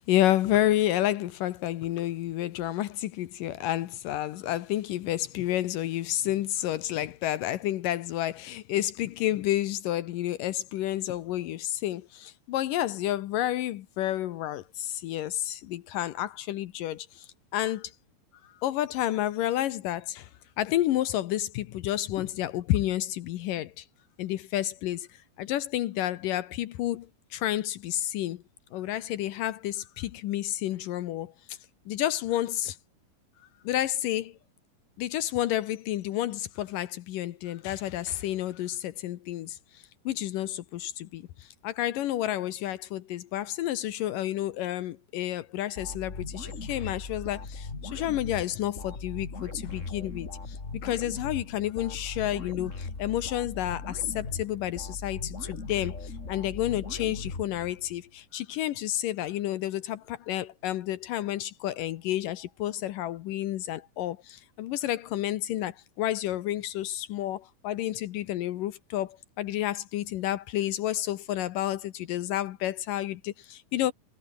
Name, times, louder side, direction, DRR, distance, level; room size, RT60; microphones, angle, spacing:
voice 1, 0.0-17.9 18.4-20.3 20.6-23.9 24.2-28.4 28.7-31.6 31.9-32.8 33.6-34.4 35.0-50.6 50.8-73.9, left 13 dB, 75° left, 2.5 m, -30 dB
sound 1, 45.8-58.0, left 3 dB, 20° left, 2.8 m, -39 dB
omnidirectional pair, 4.1 m